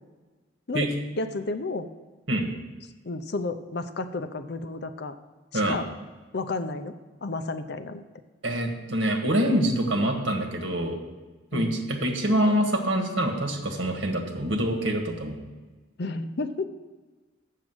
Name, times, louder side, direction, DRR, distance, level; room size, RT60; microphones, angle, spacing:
voice 1, 1.2-1.9 3.0-5.1 5.5-5.9 6.3-7.0 7.2-8.0 11.5-11.8 16.0-16.7, left 3 dB, 60° left, 10 dB, 0.6 m, -31 dB
voice 2, 8.4-11.0 11.5-15.4, right 1 dB, 75° right, 3 dB, 1.6 m, -25 dB
7.4 x 6.6 x 7.8 m, 1.3 s
head